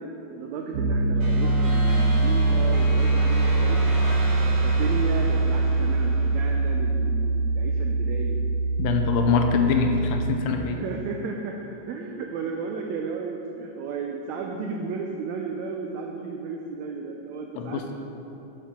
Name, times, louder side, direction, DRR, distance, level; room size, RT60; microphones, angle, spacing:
voice 1, 0.0-3.8 4.6-8.4 10.6-17.9, right 5 dB, 90° right, 1 dB, 1.6 m, -33 dB
Piano, 0.7-10.3, right 2 dB, 70° right, 1.7 m, -23 dB
sound 1, 1.2-6.7, right 1 dB, 40° right, 1.6 m, -36 dB
voice 2, 8.8-10.8 17.6-17.8, left 6 dB, 80° left, 4 dB, 2.2 m, -24 dB
10.0 x 8.3 x 3.7 m, 3.0 s
omnidirectional pair, 3.9 m